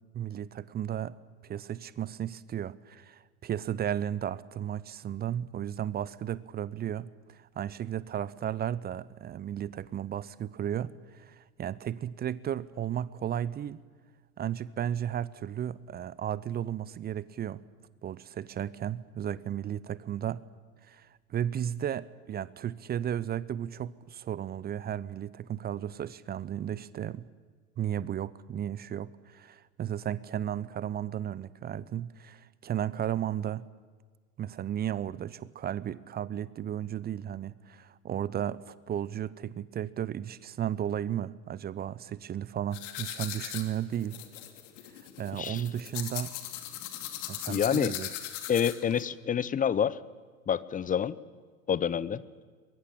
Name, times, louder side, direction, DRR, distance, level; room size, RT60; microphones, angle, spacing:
voice 1, 0.1-1.2 1.4-13.8 14.4-17.6 18.0-20.4 20.8-27.3 27.8-33.6 34.4-44.2 45.2-46.3 47.3-48.1, right 10 dB, 25° right, 20 dB, 0.7 m, -34 dB
sound 1, 42.7-49.0, left 12 dB, 60° left, 2.9 m, -39 dB
voice 2, 47.5-47.9 48.5-50.0 50.5-51.2 51.7-52.2, left 8 dB, 20° left, 18 dB, 0.8 m, -27 dB
22.5 x 22.0 x 8.8 m, 1.5 s
figure-of-eight pair, 80°, 41 cm